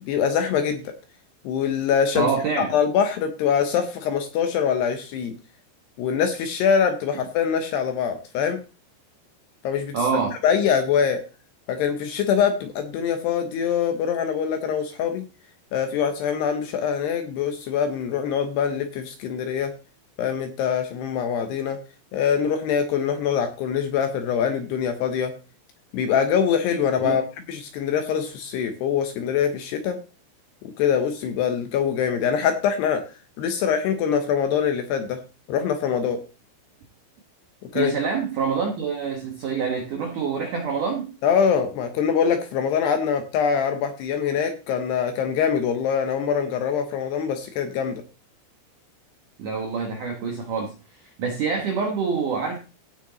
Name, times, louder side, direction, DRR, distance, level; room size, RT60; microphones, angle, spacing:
voice 1, 0.0-1.0 1.4-2.3 2.6-5.4 6.0-8.6 9.6-10.0 10.4-11.2 11.7-15.2 15.7-19.7 20.2-21.8 22.1-25.3 25.9-27.2 27.5-30.0 30.6-33.0 33.4-35.2 35.5-36.2 37.7-37.9 41.2-48.0, left 7 dB, 75° left, 2.6 m, -23 dB
voice 2, 2.1-2.8 9.9-10.4 27.0-27.2 37.7-41.1 49.4-50.7 51.0-52.6, right 5 dB, 70° right, 1.9 m, -26 dB
16.0 x 6.0 x 3.9 m
omnidirectional pair, 5.7 m